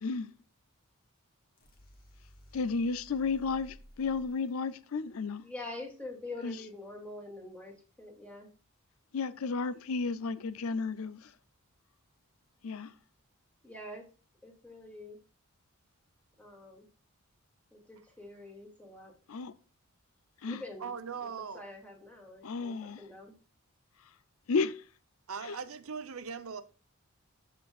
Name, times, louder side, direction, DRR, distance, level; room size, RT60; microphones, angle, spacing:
voice 1, 0.0-0.3 2.5-5.4 6.4-6.6 9.1-11.3 12.6-12.9 19.3-19.5 20.4-20.6 22.4-23.0 24.5-24.8 25.4-25.6, left 4 dB, 75° left, 0.5 m, -33 dB
sound 1, 1.5-4.5, equal, 45° left, 1.9 m, -55 dB
voice 2, 5.4-8.5 13.6-14.0 14.4-15.2 16.4-16.9 17.7-19.1 20.5-20.9 21.2-21.3 21.5-23.3, left 2 dB, 5° left, 2.3 m, -45 dB
voice 3, 20.8-21.6 25.3-26.6, right 6 dB, 75° right, 0.8 m, -39 dB
13.0 x 5.1 x 2.4 m
head